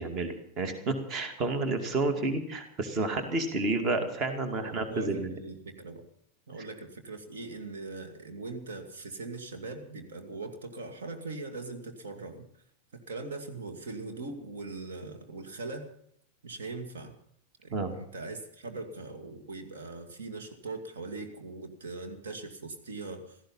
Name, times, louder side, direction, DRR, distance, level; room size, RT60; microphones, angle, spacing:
voice 1, 0.0-5.4 6.6-6.7 17.7-17.9, right 2 dB, 35° right, 8 dB, 2.4 m, -30 dB
voice 2, 4.5-6.0 6.5-12.5 12.9-15.9 16.4-17.1 17.6-23.4, right 3 dB, 65° right, 5 dB, 2.5 m, -40 dB
17.0 x 14.5 x 5.7 m, 0.70 s
figure-of-eight pair, 90°, 0 cm